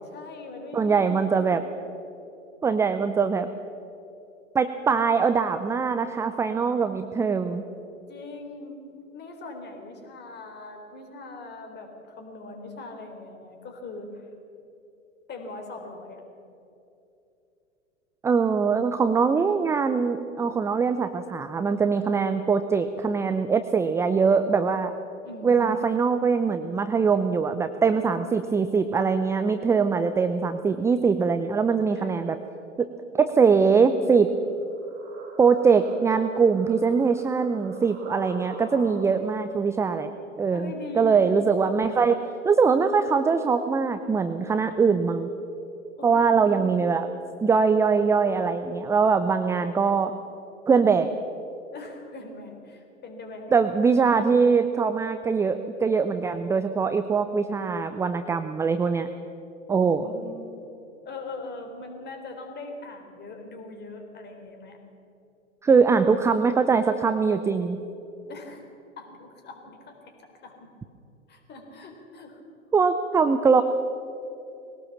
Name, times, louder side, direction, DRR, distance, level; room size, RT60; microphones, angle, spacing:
voice 1, 0.1-1.5 7.9-14.3 15.3-16.2 25.2-25.8 31.9-32.4 38.7-39.4 40.5-41.3 46.0-46.8 51.7-53.5 59.7-60.5 61.1-64.8 68.3-68.7 69.0-70.7 71.3-72.4, left 2 dB, 25° left, 4 dB, 3.9 m, -41 dB
voice 2, 0.7-1.6 2.6-3.5 4.5-7.6 18.2-24.9 25.4-32.4 32.8-32.9 33.1-34.3 35.4-40.1 40.4-45.3 46.0-47.1 47.4-50.1 50.7-51.1 53.5-59.1 59.7-60.1 65.6-67.8 72.7-73.6, right 5 dB, 10° right, 10 dB, 0.5 m, -22 dB
sound 1, 34.2-39.3, right 2 dB, 40° right, 5.2 m, -43 dB
21.0 x 17.5 x 7.3 m, 2.8 s
figure-of-eight pair, 100°, 37 cm